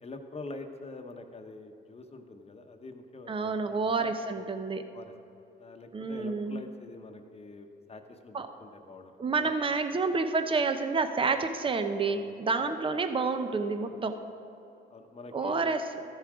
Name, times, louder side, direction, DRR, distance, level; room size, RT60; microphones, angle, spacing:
voice 1, 0.0-4.5 4.9-5.1 5.6-9.5 12.1-12.7 13.9-14.1 14.9-15.7, left 3 dB, 30° left, 5 dB, 1.0 m, -46 dB
voice 2, 3.3-4.8 5.9-6.6 8.3-8.5 9.2-14.2 15.3-16.0, right 4 dB, 25° right, 8 dB, 0.7 m, -29 dB
13.5 x 7.3 x 4.9 m, 2.9 s
cardioid pair, 90°, 20 cm